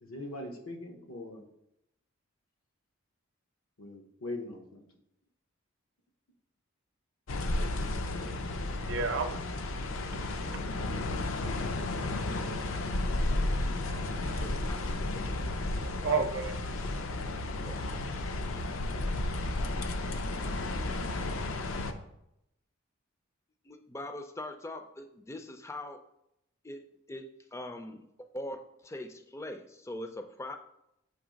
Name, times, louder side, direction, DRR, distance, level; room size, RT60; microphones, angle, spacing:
voice 1, 0.0-1.4 3.8-4.8, left 2 dB, 85° left, 4 dB, 1.0 m, -41 dB
sound 1, 7.3-21.9, left 2 dB, 70° left, 0.5 m, -33 dB
voice 2, 8.7-9.4 10.1-10.2 13.6-14.5 16.0-16.6, right 4 dB, 60° right, 8 dB, 0.6 m, -33 dB
voice 3, 14.4-14.8 15.1-15.5 16.0-16.2 17.6-17.8 23.6-26.1 26.6-30.6, left 1 dB, 15° left, 7 dB, 0.4 m, -42 dB
7.1 x 3.1 x 5.1 m, 0.82 s
head